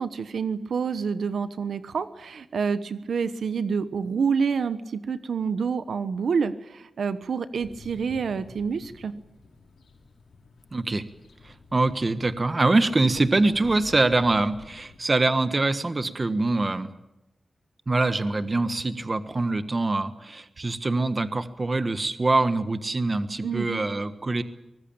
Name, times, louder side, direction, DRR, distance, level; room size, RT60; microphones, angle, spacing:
voice 1, 0.0-9.1 23.4-23.8, right 6 dB, 80° right, 12 dB, 1.1 m, -28 dB
sound 1, 7.5-15.0, left 4 dB, 85° left, 5.3 m, -49 dB
voice 2, 10.7-11.0 11.4-16.9 17.9-24.4, right 2 dB, 30° right, 11 dB, 1.4 m, -24 dB
23.5 x 20.0 x 8.9 m, 0.91 s
wide cardioid pair, 125°, 0 cm